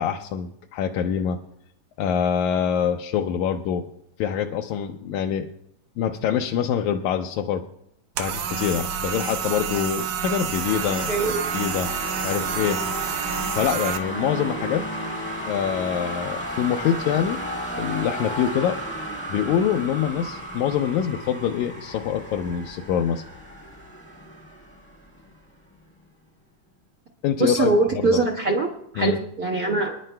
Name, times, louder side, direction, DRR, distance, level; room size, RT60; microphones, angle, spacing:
voice 1, 0.0-1.4 2.0-3.8 4.2-5.5 6.0-7.6 8.2-11.1 11.5-11.9 12.2-12.8 13.1-13.2 13.5-14.8 15.5-17.4 17.7-18.8 19.3-23.2 27.2-28.3 29.0-29.2, left 8 dB, 80° left, 3 dB, 1.9 m, -25 dB
sound 1, 8.2-14.0, right 7 dB, 80° right, 2.3 m, -28 dB
sound 2, 10.5-25.4, right 1 dB, 10° left, 0.5 m, -34 dB
voice 2, 11.1-11.4 27.4-30.0, right 3 dB, 50° right, 0 dB, 1.1 m, -23 dB
28.5 x 10.0 x 2.2 m, 0.75 s
omnidirectional pair, 3.6 m